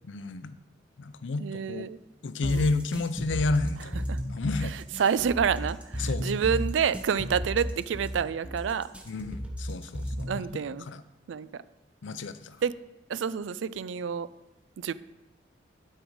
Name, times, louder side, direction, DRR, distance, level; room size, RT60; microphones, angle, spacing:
voice 1, 0.1-0.6 1.0-1.9 2.2-4.7 6.0-6.4 9.1-11.0 12.0-12.6, left 3 dB, 85° left, 13 dB, 0.5 m, -31 dB
voice 2, 1.4-2.0 2.4-2.6 4.1-4.2 5.0-8.9 10.2-10.9 11.3-11.6 12.6-12.7 13.1-14.3 14.8-14.9, right 7 dB, 85° right, 16 dB, 0.4 m, -28 dB
sound 1, 2.4-10.4, equal, 5° right, 0.8 m, -34 dB
11.5 x 5.5 x 4.7 m, 1.0 s
head